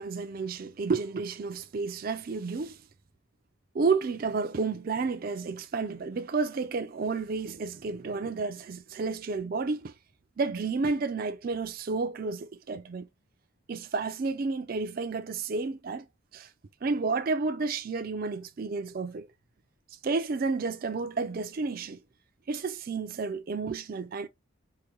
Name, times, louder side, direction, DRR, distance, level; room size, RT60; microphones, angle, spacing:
voice 1, 0.0-2.8 3.7-9.9 10.4-13.1 13.7-16.0 16.3-16.5 16.8-19.3 20.0-22.0 22.5-24.3, right 4 dB, 45° right, 0.4 m, -31 dB
4.8 x 2.2 x 2.9 m
head